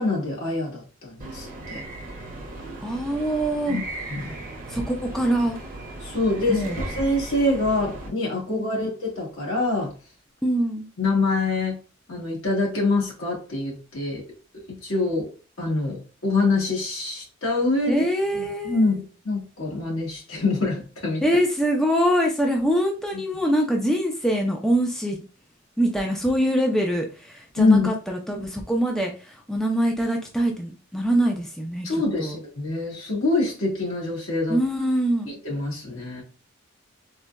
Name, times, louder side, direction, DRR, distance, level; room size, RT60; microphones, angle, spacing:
voice 1, 0.0-1.8 3.7-4.3 6.0-9.9 11.0-11.7 12.1-14.2 14.8-15.3 15.6-18.0 18.4-21.2 27.6-27.9 31.8-34.6 35.4-36.2, left 2 dB, 80° left, -3 dB, 1.4 m, -25 dB
sound 1, 1.2-8.1, right 2 dB, 45° right, 0.7 m, -36 dB
voice 2, 2.8-3.8 4.7-5.6 6.5-6.8 8.6-8.9 10.4-10.9 17.9-19.0 21.2-25.2 25.8-31.9 32.2-32.4 34.5-35.3, equal, ahead, 1 dB, 0.4 m, -24 dB
3.8 x 2.1 x 2.2 m, 0.34 s
head